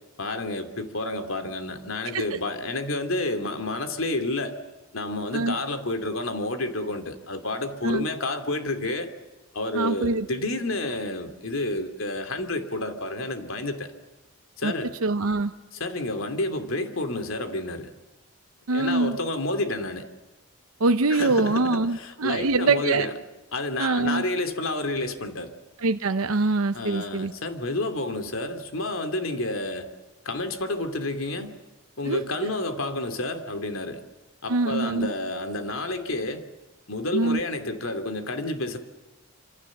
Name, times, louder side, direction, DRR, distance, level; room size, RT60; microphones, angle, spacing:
voice 1, 0.2-4.6 4.9-9.1 9.5-13.9 14.6-14.9 15.7-17.9 18.7-20.1 21.1-23.1 23.5-25.5 26.7-29.9 30.2-31.6 32.0-34.0 34.4-36.5 36.9-38.8, left 2 dB, 75° left, 7 dB, 2.6 m, -30 dB
voice 2, 9.7-10.3 14.6-14.7 15.0-15.5 18.7-19.2 20.8-23.1 23.8-24.2 25.8-27.3 32.1-32.2 34.5-35.1 37.1-37.4, right 3 dB, 85° right, 9 dB, 0.8 m, -24 dB
26.5 x 26.5 x 7.3 m, 1.1 s
head